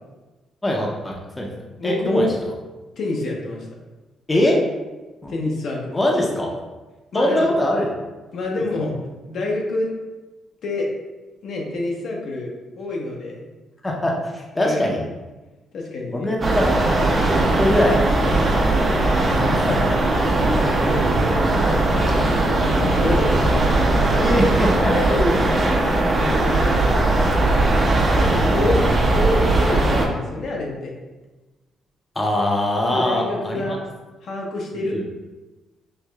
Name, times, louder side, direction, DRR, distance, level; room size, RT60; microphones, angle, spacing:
voice 1, 0.6-1.5 1.8-2.3 4.3-4.6 5.2-5.3 5.9-6.5 7.1-7.9 8.5-8.6 13.8-15.0 16.1-16.9 17.3-18.3 18.6-18.9 19.4-19.9 24.2-24.9 32.2-33.6 34.9-35.0, left 1 dB, 20° left, -1 dB, 0.6 m, -22 dB
voice 2, 1.8-2.4 3.0-3.7 5.3-6.0 7.1-7.5 8.3-8.9 9.2-9.9 10.6-10.9 11.4-13.4 14.6-15.0 15.7-16.3 19.2-19.9 20.3-22.1 22.6-24.3 24.9-25.4 26.0-27.2 28.1-30.9 32.9-33.8 34.2-35.0, left 2 dB, 65° left, -1 dB, 0.7 m, -27 dB
sound 1, 16.4-30.1, right 2 dB, 35° right, 0.6 m, -19 dB
4.6 x 2.6 x 2.3 m, 1.2 s
cardioid pair, 90°, 0 cm